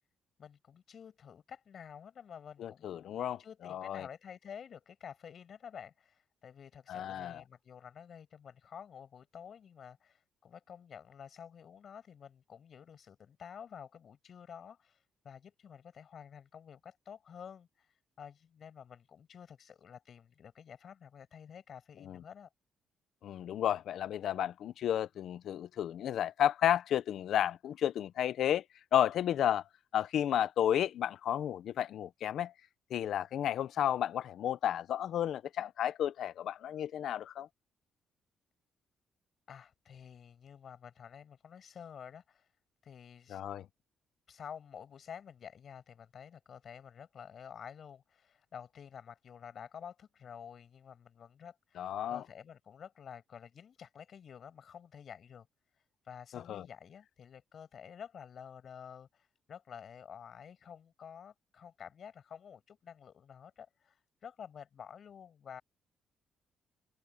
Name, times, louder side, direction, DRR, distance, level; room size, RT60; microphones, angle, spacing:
voice 1, 0.4-15.0 15.2-22.5 39.5-42.5 42.8-43.4 44.3-55.5 56.0-65.6, left 8 dB, 55° left, 6.3 m, -50 dB
voice 2, 2.6-4.1 6.9-7.4 22.0-22.2 23.2-28.6 28.9-29.6 29.9-32.5 32.9-37.5 43.3-43.6 51.8-52.2 56.3-56.7, left 10 dB, 70° left, 0.9 m, -32 dB
cardioid pair, 90°, 0 cm